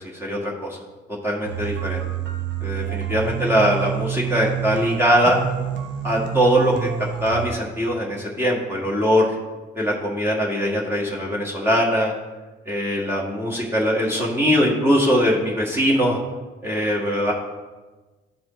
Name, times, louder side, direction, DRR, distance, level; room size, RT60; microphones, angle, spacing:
voice 1, 0.2-0.8 1.2-2.0 2.6-5.4 6.0-6.9 7.2-9.3 9.7-12.1 12.6-16.2 16.6-17.3, equal, 10° right, -4 dB, 1.6 m, -21 dB
sound 1, 1.4-7.5, right 9 dB, 65° right, 1.0 m, -28 dB
13.0 x 4.6 x 3.1 m, 1.2 s
cardioid pair, 90°, 20 cm